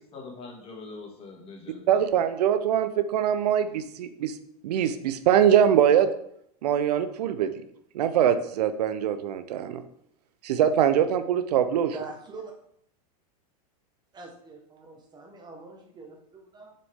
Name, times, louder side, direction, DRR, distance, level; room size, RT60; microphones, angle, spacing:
voice 1, 0.0-2.0, left 3 dB, 30° left, 0 dB, 2.3 m, -43 dB
voice 2, 1.9-4.4 4.6-6.1 6.6-7.5 7.9-9.8 10.4-11.9, right 9 dB, 80° right, 11 dB, 0.7 m, -23 dB
voice 3, 11.9-12.5 14.1-16.7, right 4 dB, 20° right, 2 dB, 1.3 m, -43 dB
6.8 x 6.3 x 3.6 m, 0.71 s
supercardioid pair, 130°, 21 cm